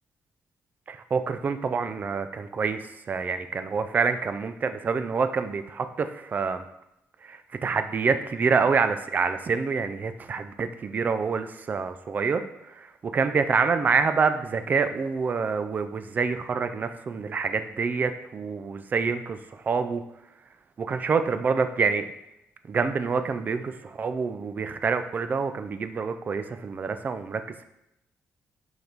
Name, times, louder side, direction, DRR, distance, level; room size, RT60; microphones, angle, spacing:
voice 1, 0.9-6.6 7.2-12.4 12.8-19.4 19.6-20.0 20.8-22.0 22.7-27.6, right 5 dB, 30° right, 9 dB, 0.4 m, -27 dB
5.2 x 4.0 x 4.5 m, 0.85 s
cardioid pair, 165°, 6 cm